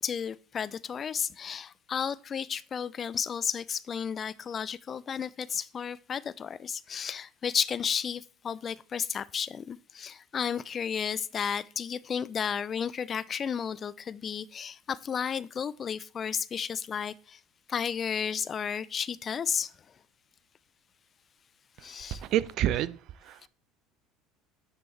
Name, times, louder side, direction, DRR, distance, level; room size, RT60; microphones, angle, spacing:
voice 1, 0.0-17.4 17.7-19.7 21.8-22.2, left 7 dB, 35° left, 0.3 m, -33 dB
voice 2, 22.2-23.5, right 12 dB, 60° right, 0.4 m, -29 dB
9.2 x 3.4 x 3.2 m
hypercardioid pair, 75°, 0 cm